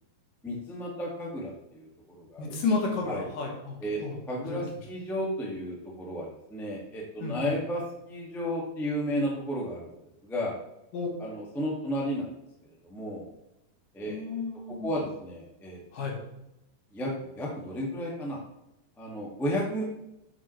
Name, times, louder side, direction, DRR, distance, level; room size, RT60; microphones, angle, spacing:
voice 1, 0.4-1.9 2.1-2.6 3.1-3.2 3.8-4.0 4.3-9.9 10.2-10.5 11.2-12.3 12.6-13.2 13.9-14.4 14.7-15.8 16.1-16.2 16.9-18.4 19.0-19.8, equal, 5° left, -3 dB, 0.3 m, -33 dB
voice 2, 2.4-3.7 4.0-4.1 4.5-4.6 7.2-7.5 10.9-11.1 14.1-14.9 15.9-16.2, left 4 dB, 60° left, 0 dB, 3.2 m, -31 dB
9.2 x 7.5 x 3.3 m, 0.89 s
omnidirectional pair, 4.5 m